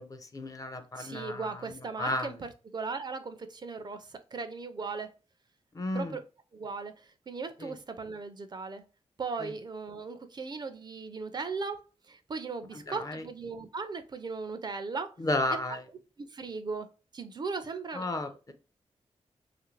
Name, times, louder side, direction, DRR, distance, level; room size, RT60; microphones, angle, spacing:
voice 1, 0.0-2.3 5.7-6.2 7.6-7.8 9.4-9.5 12.7-13.2 15.2-15.8 17.9-18.5, left 2 dB, 30° left, 8 dB, 0.4 m, -33 dB
voice 2, 1.0-2.5 2.7-5.1 5.9-6.2 6.5-8.8 9.2-15.1 16.2-16.9 17.1-18.1, right 4 dB, 40° right, 9 dB, 0.4 m, -37 dB
3.0 x 2.5 x 3.0 m, 0.33 s
wide cardioid pair, 125°, 11 cm